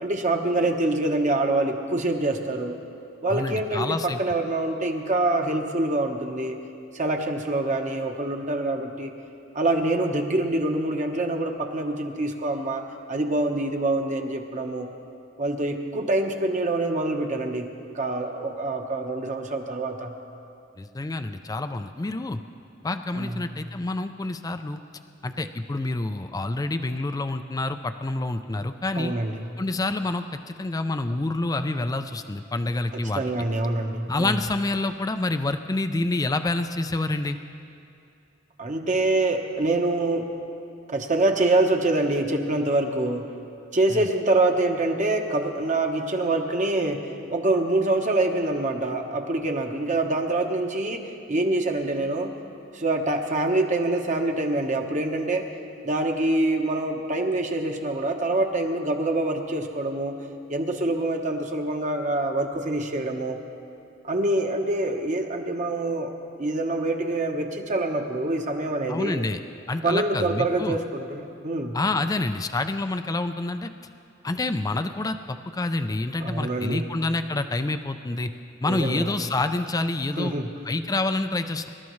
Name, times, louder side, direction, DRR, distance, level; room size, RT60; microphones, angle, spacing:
voice 1, 0.0-2.7 3.2-6.5 6.9-9.1 9.5-12.8 13.1-14.9 15.4-17.7 17.9-20.1 23.1-23.5 28.9-29.4 32.9-34.4 38.6-40.3 40.9-43.2 43.7-47.0 47.3-51.0 51.3-52.3 52.7-55.5 55.8-60.1 60.5-63.4 64.0-66.1 66.4-69.2 69.8-71.8 76.2-76.9 78.6-79.1 80.2-80.5, right 2 dB, 40° right, 3 dB, 1.2 m, -25 dB
voice 2, 3.3-4.2 20.8-22.4 22.8-24.8 25.2-29.1 29.6-33.2 34.1-37.4 43.9-44.1 68.9-69.4 69.7-70.8 71.7-73.7 74.2-78.3 78.6-80.4 80.6-81.7, left 2 dB, 20° left, 8 dB, 0.4 m, -27 dB
26.5 x 13.0 x 3.2 m, 2.6 s
head